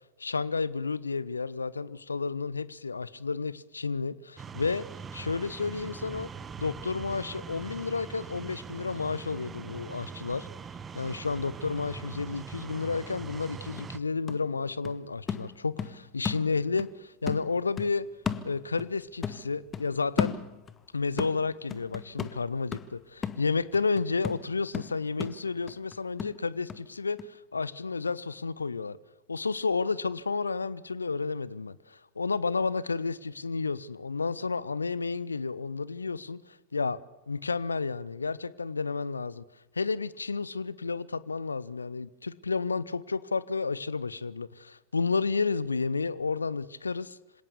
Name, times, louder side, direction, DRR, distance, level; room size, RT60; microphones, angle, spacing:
voice 1, 0.2-4.8 5.1-6.3 6.6-10.5 10.9-18.1 18.4-20.3 20.9-29.0 29.3-37.0 37.3-39.4 39.8-47.2, left 4 dB, 75° left, 0.8 m, -31 dB
sound 1, 4.4-14.0, right 6 dB, 20° right, 1.0 m, -42 dB
sound 2, 13.3-13.4 13.8-16.9 17.3-19.0 19.2-20.8 21.2-26.8 27.2-27.3, left 7 dB, 20° left, 1.3 m, -36 dB
26.5 x 17.5 x 7.0 m
figure-of-eight pair, 90°, 0 cm